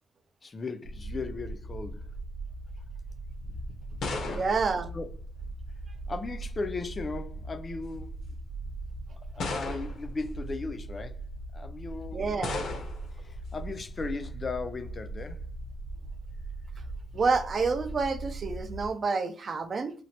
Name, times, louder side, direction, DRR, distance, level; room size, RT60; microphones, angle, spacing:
voice 1, 0.4-2.1 4.2-4.4 4.9-5.1 6.1-8.2 9.2-11.2 11.5-12.2 13.1-15.4, left 3 dB, 35° left, 0.4 m, -37 dB
sound 1, 0.8-18.9, right 2 dB, 85° right, 0.6 m, -40 dB
sound 2, 3.4-5.8 6.8-7.2 8.1-8.2 9.4-10.2 12.4-13.2, left 3 dB, 70° left, 0.7 m, -36 dB
voice 2, 4.2-4.9 12.1-12.6 17.1-19.9, right 4 dB, 45° right, 0.4 m, -28 dB
3.1 x 2.1 x 2.8 m
cardioid pair, 90°, 0 cm